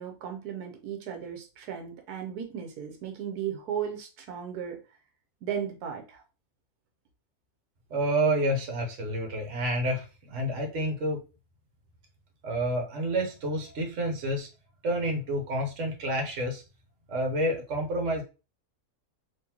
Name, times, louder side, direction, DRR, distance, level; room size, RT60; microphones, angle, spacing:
voice 1, 0.0-4.8 5.4-6.2, right 8 dB, 90° right, 3 dB, 1.2 m, -36 dB
voice 2, 7.9-11.2 12.4-14.5 14.8-16.6 17.1-18.2, right 1 dB, 55° right, 2 dB, 1.3 m, -29 dB
3.8 x 3.0 x 2.9 m, 0.31 s
omnidirectional pair, 1.6 m